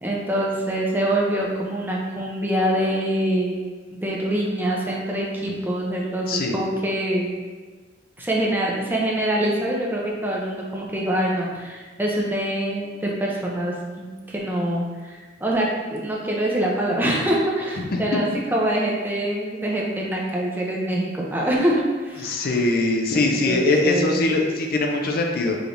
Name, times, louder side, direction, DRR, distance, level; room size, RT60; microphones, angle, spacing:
voice 1, 0.0-3.6 3.9-7.4 8.2-22.6 23.1-24.2, right 1 dB, 10° right, -3 dB, 0.5 m, -25 dB
voice 2, 22.2-25.6, left 2 dB, 55° left, 2 dB, 0.5 m, -22 dB
4.9 x 3.2 x 2.5 m, 1.4 s
head